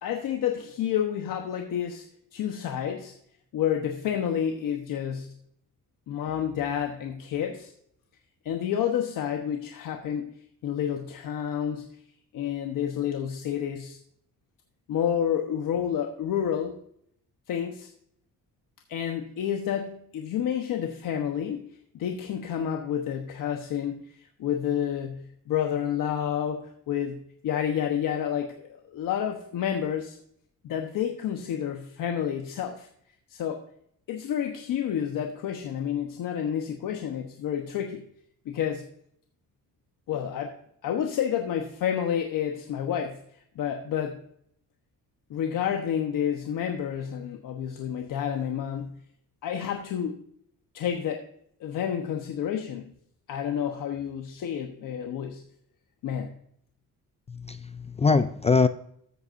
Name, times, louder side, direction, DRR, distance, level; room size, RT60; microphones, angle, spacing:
voice 1, 0.0-2.1 2.3-3.1 3.5-5.4 6.1-7.7 8.4-12.0 12.3-14.0 14.9-16.8 17.5-17.9 18.9-30.2 30.6-32.9 33.3-33.6 34.1-38.0 38.4-38.9 40.1-40.6 40.8-44.2 45.3-49.0 49.4-50.2 50.7-51.3 51.6-52.9 53.3-55.4 56.0-56.3, left 9 dB, 75° left, 4 dB, 1.1 m, -30 dB
voice 2, 57.3-58.7, left 4 dB, 20° left, 12 dB, 0.3 m, -23 dB
14.0 x 8.2 x 2.6 m, 0.68 s
cardioid pair, 135°, 33 cm